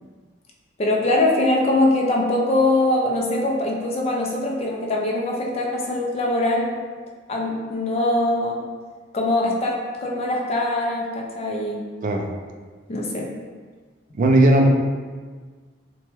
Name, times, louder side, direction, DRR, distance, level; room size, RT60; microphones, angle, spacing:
voice 1, 0.8-6.8 7.3-8.6 9.1-11.8 12.9-13.3, left 2 dB, 35° left, -1 dB, 0.4 m, -22 dB
voice 2, 14.2-14.7, right 1 dB, 45° right, 2 dB, 0.3 m, -16 dB
3.0 x 2.2 x 3.0 m, 1.5 s
head